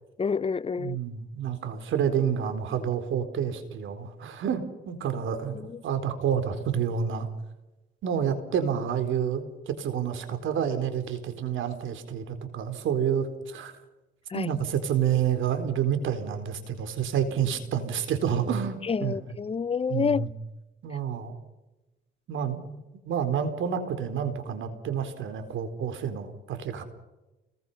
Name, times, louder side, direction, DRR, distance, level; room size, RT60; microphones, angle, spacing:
voice 1, 0.2-1.0 5.5-5.8 14.3-14.5 18.8-20.3, left 5 dB, 30° left, 0.7 m, -28 dB
voice 2, 0.8-7.3 8.0-13.7 14.3-19.3 19.9-20.3 20.8-21.4 22.3-22.8 23.0-26.8, right 8 dB, 80° right, 4.2 m, -29 dB
30.0 x 22.0 x 5.6 m
cardioid pair, 90°, 20 cm